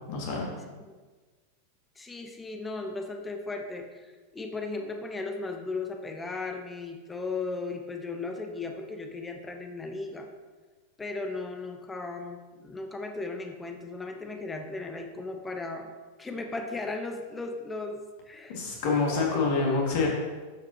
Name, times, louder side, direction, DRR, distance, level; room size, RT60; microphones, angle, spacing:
voice 1, 0.1-0.5 18.5-20.1, left 4 dB, 50° left, -1 dB, 1.9 m, -26 dB
voice 2, 2.0-10.3 11.0-18.6, left 3 dB, 15° left, 4 dB, 0.7 m, -36 dB
12.0 x 5.1 x 2.8 m, 1.4 s
figure-of-eight pair, 90°, 0 cm